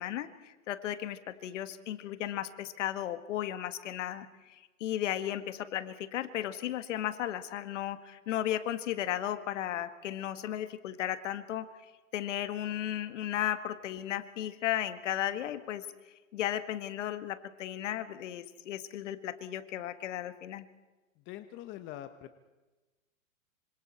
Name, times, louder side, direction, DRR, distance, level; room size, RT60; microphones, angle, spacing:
voice 1, 0.0-15.8 16.3-20.7, left 12 dB, 60° left, 11 dB, 1.8 m, -35 dB
voice 2, 21.2-22.4, left 12 dB, 25° left, 10 dB, 1.1 m, -44 dB
26.5 x 26.0 x 4.3 m, 1.1 s
hypercardioid pair, 135°, 42 cm